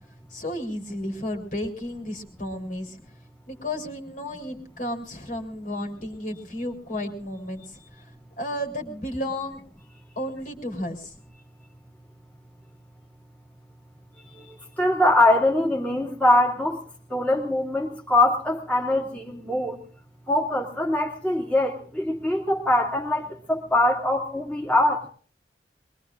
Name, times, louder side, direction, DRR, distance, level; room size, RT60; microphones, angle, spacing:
voice 1, 0.3-3.0 3.5-8.1 8.4-9.6 10.2-11.1, left 1 dB, 45° left, 2 dB, 3.6 m, -33 dB
voice 2, 14.4-16.8 17.1-19.8 20.3-25.0, left 1 dB, 10° left, -3 dB, 2.4 m, -23 dB
23.0 x 22.5 x 2.5 m, 0.43 s
head